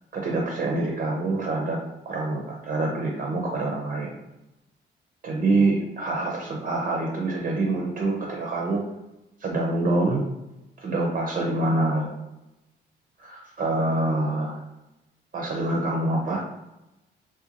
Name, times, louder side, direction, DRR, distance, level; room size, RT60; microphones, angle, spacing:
voice 1, 0.1-1.8 2.1-4.2 5.2-8.8 9.4-10.2 10.8-12.1 13.2-14.6 15.3-16.4, right 2 dB, 45° right, -1 dB, 0.5 m, -26 dB
2.4 x 2.1 x 2.8 m, 0.97 s
cardioid pair, 90°, 20 cm